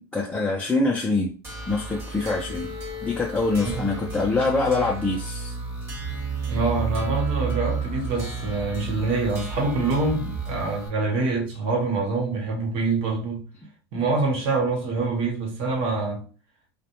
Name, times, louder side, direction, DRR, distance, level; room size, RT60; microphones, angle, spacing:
voice 1, 0.0-1.3 1.7-2.7 3.0-5.6, left 3 dB, 10° left, 0.5 m, -24 dB
sound 1, 1.4-10.9, right 4 dB, 20° right, 1.1 m, -31 dB
voice 2, 6.5-13.5 13.9-16.3, right 3 dB, 50° right, 0.9 m, -25 dB
2.3 x 2.1 x 2.9 m
supercardioid pair, 115°, 12 cm